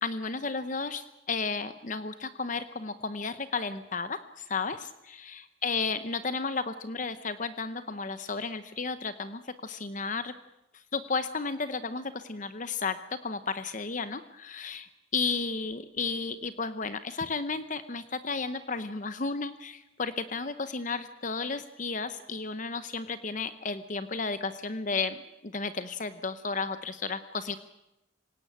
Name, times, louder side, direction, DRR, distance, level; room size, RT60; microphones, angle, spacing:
voice 1, 0.0-10.3 10.7-25.2 25.4-27.6, left 4 dB, 40° left, 12 dB, 0.8 m, -33 dB
26.0 x 17.5 x 8.8 m, 0.95 s
head